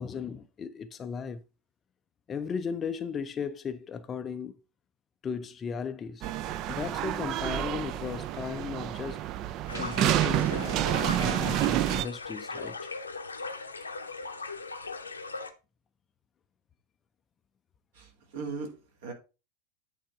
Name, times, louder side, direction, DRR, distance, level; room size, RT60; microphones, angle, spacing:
voice 1, 0.0-1.4 2.3-4.6 5.2-6.3 6.7-9.3 9.8-12.9, left 6 dB, 25° left, 0.4 m, -36 dB
sound 1, 6.2-12.0, right 12 dB, 35° right, 0.4 m, -29 dB
sound 2, 9.7-15.5, left 3 dB, 75° left, 0.7 m, -38 dB
voice 2, 17.9-19.1, right 4 dB, 55° right, 1.8 m, -39 dB
8.7 x 3.5 x 4.6 m
figure-of-eight pair, 90°, 0 cm